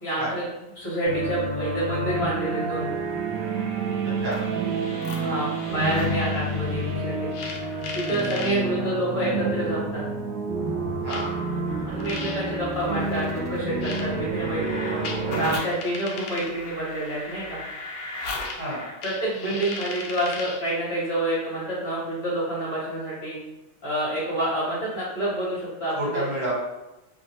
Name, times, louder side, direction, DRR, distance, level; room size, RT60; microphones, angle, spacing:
voice 1, 0.0-0.4 0.8-2.9 5.2-7.1 7.9-10.0 11.9-17.6 19.0-23.4 23.8-26.2, right 1 dB, 55° left, -9 dB, 1.1 m, -28 dB
sound 1, 1.0-15.6, right 3 dB, 80° right, 1.3 m, -29 dB
sound 2, 4.2-6.2 7.3-8.6 9.7-9.8 11.1-20.7, left 3 dB, 75° left, 0.8 m, -37 dB
voice 2, 18.6-18.9 25.9-26.5, right 1 dB, 60° right, -5 dB, 1.5 m, -29 dB
3.0 x 2.2 x 2.7 m, 0.98 s
omnidirectional pair, 2.0 m